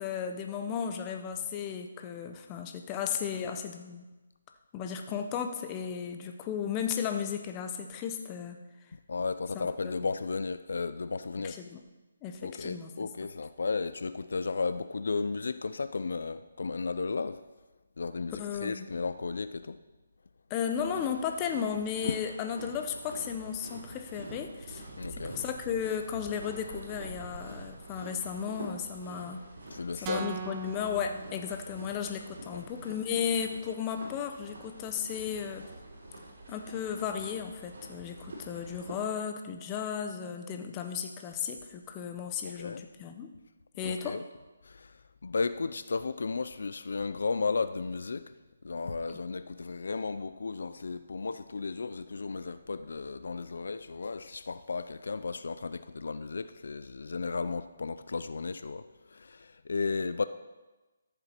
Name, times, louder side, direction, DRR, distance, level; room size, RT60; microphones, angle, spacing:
voice 1, 0.0-4.1 4.7-8.6 9.5-10.1 11.4-11.8 12.2-13.1 18.4-18.9 20.5-24.8 25.1-29.4 30.0-35.6 36.5-43.3 43.8-44.2, left 8 dB, 20° left, 5 dB, 0.8 m, -35 dB
voice 2, 9.1-11.6 12.4-17.4 18.0-19.8 25.0-25.4 29.7-30.3 32.5-32.7 42.4-42.8 43.8-44.2 44.6-44.9 45.2-48.3 48.6-58.8 59.1-60.2, left 4 dB, 70° left, 12 dB, 0.5 m, -34 dB
sound 1, 20.7-39.0, right 2 dB, 70° right, 3.5 m, -46 dB
sound 2, 30.1-32.2, right 7 dB, 20° right, 0.6 m, -41 dB
13.5 x 7.0 x 4.5 m, 1.1 s
hypercardioid pair, 160°, 0 cm